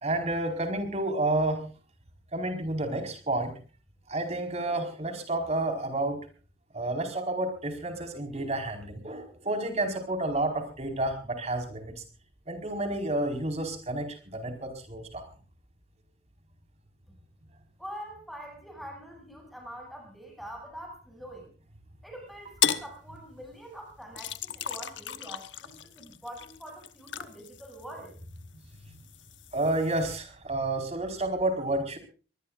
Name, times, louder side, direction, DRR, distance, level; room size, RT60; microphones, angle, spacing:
voice 1, 0.0-1.6 2.3-3.5 4.1-6.2 6.7-12.0 12.5-15.3 29.5-32.0, right 2 dB, 40° right, 5 dB, 4.8 m, -30 dB
voice 2, 17.8-21.5 22.0-28.1, equal, ahead, 1 dB, 8.0 m, -44 dB
sound 1, 22.6-22.9 24.2-28.4 28.8-30.2, left 9 dB, 90° left, 1.1 m, -34 dB
24.0 x 20.0 x 2.5 m, 0.37 s
head